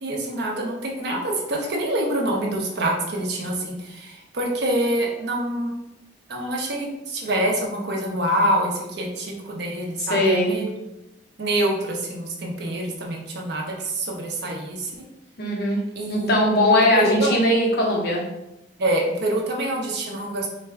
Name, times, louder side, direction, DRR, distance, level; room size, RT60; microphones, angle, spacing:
voice 1, 0.0-5.7 6.3-10.7 11.4-14.9 16.0-16.3 16.9-17.4 18.8-20.5, right 1 dB, 65° right, -1 dB, 0.8 m, -26 dB
voice 2, 10.0-10.6 15.4-15.8 16.1-18.2, left 1 dB, 60° left, -2 dB, 0.9 m, -20 dB
4.1 x 2.2 x 3.5 m, 0.91 s
head